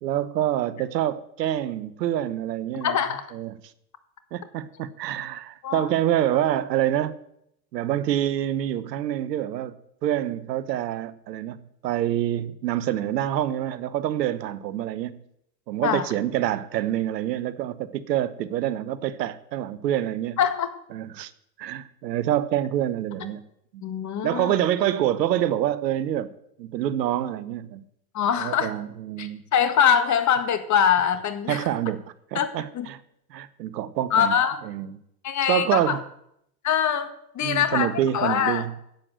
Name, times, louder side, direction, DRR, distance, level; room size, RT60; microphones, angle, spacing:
voice 1, 0.0-3.0 3.3-3.6 4.3-7.2 7.7-9.7 10.0-15.2 15.7-20.4 20.9-21.3 21.6-23.4 23.7-23.8 24.2-26.3 26.6-27.8 28.4-29.4 31.5-32.0 32.3-33.0 33.3-34.4 34.6-35.0 35.5-36.0 37.4-38.7, right 12 dB, 80° right, 1.0 m, -26 dB
voice 2, 2.8-3.3 5.6-5.8 15.8-16.1 20.4-20.7 23.8-24.5 28.1-28.7 29.2-31.7 32.4-32.5 32.7-32.9 34.1-34.6 35.2-36.0 36.6-38.6, left 8 dB, 35° left, 1.7 m, -23 dB
10.5 x 7.8 x 8.0 m
hypercardioid pair, 90°, 49 cm